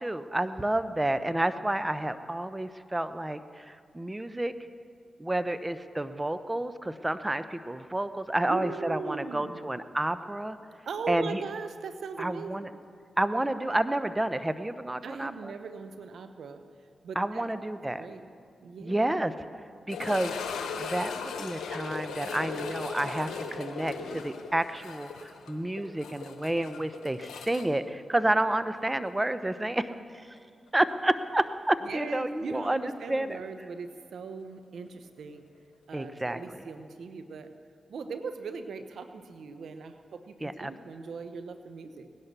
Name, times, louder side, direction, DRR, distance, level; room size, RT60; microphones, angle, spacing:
voice 1, 0.0-4.5 5.2-10.6 11.1-11.4 12.2-12.7 13.2-15.5 17.2-18.1 18.8-19.3 19.9-20.4 20.8-29.9 30.7-33.4 35.9-36.4 40.4-40.7, right 1 dB, 20° right, 12 dB, 0.8 m, -30 dB
voice 2, 8.5-9.7 10.9-12.7 15.0-16.6 17.0-17.5 17.8-18.3 18.6-19.0 31.8-35.5 35.9-37.5 37.9-42.1, right 5 dB, 75° right, 9 dB, 0.9 m, -39 dB
sound 1, 19.9-28.8 29.1-29.2 29.8-29.9 32.5-32.6, left 5 dB, 85° left, 1.1 m, -38 dB
18.5 x 11.0 x 6.8 m, 2.3 s
supercardioid pair, 40°, 0 cm